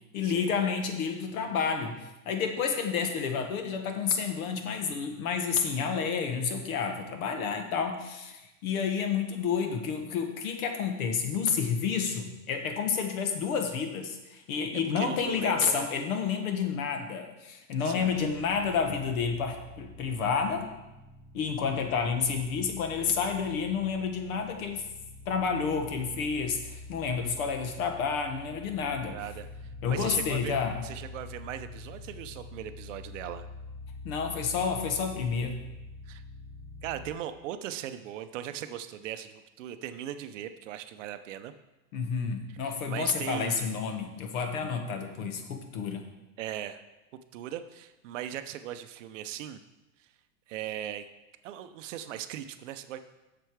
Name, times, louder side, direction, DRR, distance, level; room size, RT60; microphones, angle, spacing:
voice 1, 0.1-20.7 21.3-24.9 25.3-29.2 29.8-30.8 34.0-35.7 41.9-46.0, left 6 dB, 65° left, 5 dB, 1.4 m, -30 dB
voice 2, 15.0-15.9 17.8-18.1 29.0-30.6 30.8-33.5 36.1-36.2 36.8-41.5 42.5-43.8 46.4-46.8 47.3-49.6 50.0-50.1 50.5-51.1 51.4-53.0, right 11 dB, 55° right, 10 dB, 0.6 m, -39 dB
sound 1, 18.0-37.1, left 3 dB, ahead, 1.2 m, -46 dB
7.9 x 6.9 x 4.7 m, 1.0 s
supercardioid pair, 170°, 46 cm